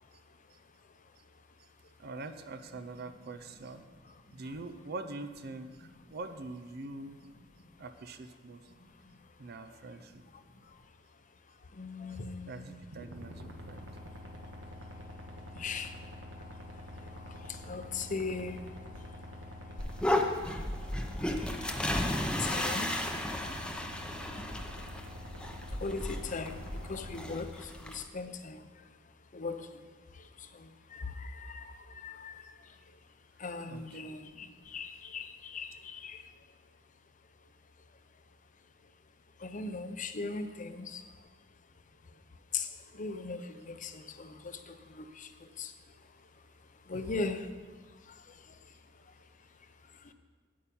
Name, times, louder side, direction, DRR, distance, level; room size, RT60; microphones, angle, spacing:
voice 1, 2.0-3.8 4.3-7.2 7.8-8.7 9.4-10.2 12.5-13.8 33.7-33.8, right 2 dB, 55° right, 9 dB, 0.6 m, -44 dB
voice 2, 11.8-12.8 15.5-15.9 17.1-18.6 21.5-21.6 22.4-22.9 23.4-23.5 25.8-28.6 29.3-29.8 30.4-32.5 33.4-36.2 39.4-41.0 42.5-45.7 46.9-47.5, left 4 dB, 40° left, 9 dB, 0.7 m, -39 dB
modulation engine, 12.8-27.3, left 1 dB, 70° right, 1.3 m, -46 dB
sound 1, 19.8-28.0, left 1 dB, 5° left, 0.7 m, -34 dB
8.7 x 8.7 x 5.4 m, 1.4 s
head